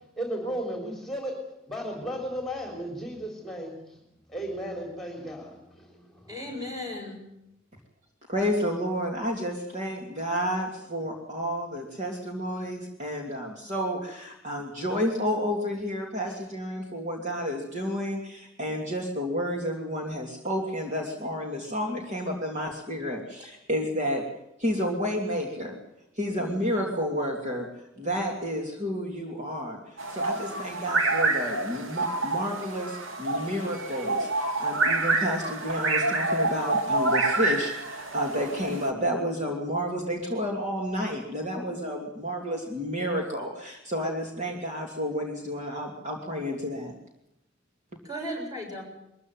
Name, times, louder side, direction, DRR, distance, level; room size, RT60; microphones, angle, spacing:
voice 1, 0.2-1.4 1.6-4.0 4.3-6.4, equal, ahead, 1 dB, 3.9 m, -35 dB
voice 2, 6.3-7.2 48.0-48.8, equal, 20° right, 0 dB, 7.9 m, -35 dB
voice 3, 8.3-24.2 24.6-25.8 26.1-27.7 28.0-46.9, equal, 35° right, 0 dB, 2.9 m, -31 dB
sound 1, 30.0-38.9, right 2 dB, 80° right, 2.6 m, -27 dB
22.5 x 15.0 x 9.4 m, 0.86 s
head